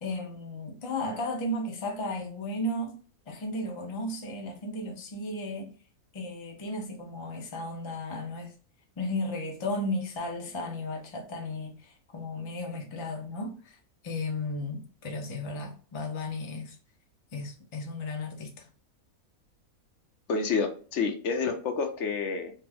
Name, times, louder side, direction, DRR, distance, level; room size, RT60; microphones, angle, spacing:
voice 1, 0.0-3.0 3.3-5.7 6.1-8.5 9.0-16.8 17.3-18.7, left 1 dB, 35° left, 0.5 m, -34 dB
voice 2, 20.3-22.5, left 5 dB, 60° left, 0.9 m, -29 dB
3.3 x 2.0 x 3.4 m
omnidirectional pair, 1.5 m